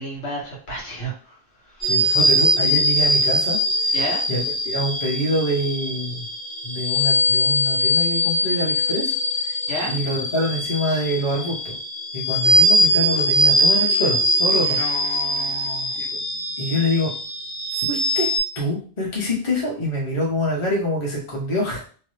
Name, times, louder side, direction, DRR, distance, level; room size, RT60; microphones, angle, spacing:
voice 1, 0.0-1.4 1.6-2.2 3.9-4.2 9.7-9.9 14.6-16.0, right 1 dB, 75° left, -2 dB, 1.3 m, -32 dB
sound 1, 1.8-18.4, equal, ahead, 0.6 m, -21 dB
voice 2, 1.9-3.6 4.3-6.3 6.6-9.1 9.9-11.7 12.1-14.8 16.6-17.1 17.7-18.3 18.6-21.8, left 1 dB, 25° left, -3 dB, 0.9 m, -25 dB
2.8 x 2.2 x 3.2 m, 0.42 s
omnidirectional pair, 1.3 m